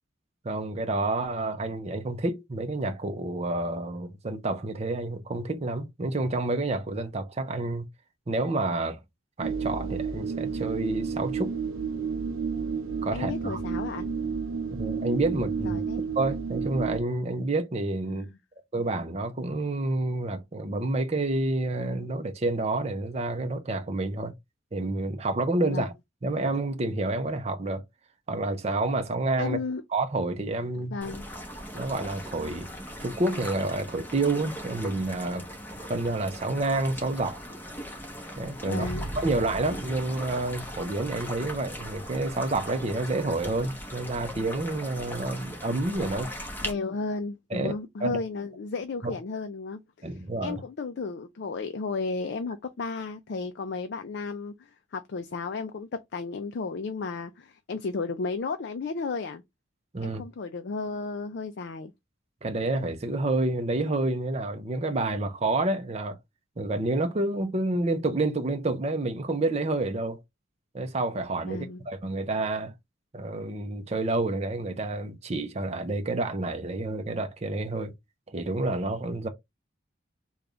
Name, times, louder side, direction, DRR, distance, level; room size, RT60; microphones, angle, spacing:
voice 1, 0.4-7.9 8.3-9.0 9.4-11.6 13.0-13.6 14.7-15.8 16.2-18.3 18.7-24.3 24.7-25.9 26.2-27.8 28.3-29.6 29.9-31.0 31.7-32.7 33.0-35.5 35.9-37.4 38.4-38.9 39.2-46.3 47.5-47.7 48.0-48.2 49.0-49.1 50.0-50.6 59.9-60.2 62.4-66.2 66.6-70.2 70.7-72.7 73.1-77.9 78.3-79.3, right 2 dB, 35° right, 0.6 m, -29 dB
sound 1, 9.4-17.0, right 5 dB, 85° right, 0.6 m, -31 dB
voice 2, 13.1-14.1 15.6-16.0 18.1-18.4 25.7-25.9 29.4-29.8 30.7-31.3 38.7-39.1 46.6-59.4 60.0-61.9 71.4-71.8, left 4 dB, 55° left, 0.4 m, -34 dB
sound 2, 31.0-46.7, equal, 10° left, 0.9 m, -40 dB
sound 3, 38.8-42.0 42.2-42.5, right 1 dB, 25° left, 1.4 m, -39 dB
3.4 x 2.3 x 3.8 m
head